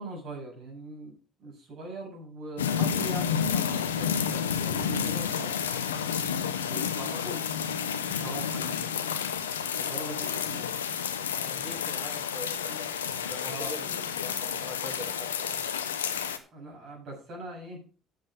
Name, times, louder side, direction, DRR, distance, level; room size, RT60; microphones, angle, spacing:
voice 1, 0.0-5.6 6.7-7.4 8.0-9.3 9.6-10.7 12.6-12.9 13.4-13.7 16.5-17.8, right 2 dB, 60° right, -1 dB, 7.3 m, -41 dB
sound 1, 2.6-16.4, left 7 dB, 90° left, 0.8 m, -30 dB
voice 2, 11.3-15.7, left 1 dB, 5° left, 0 dB, 4.5 m, -44 dB
10.5 x 7.6 x 5.2 m, 0.37 s
hypercardioid pair, 60°, 0 cm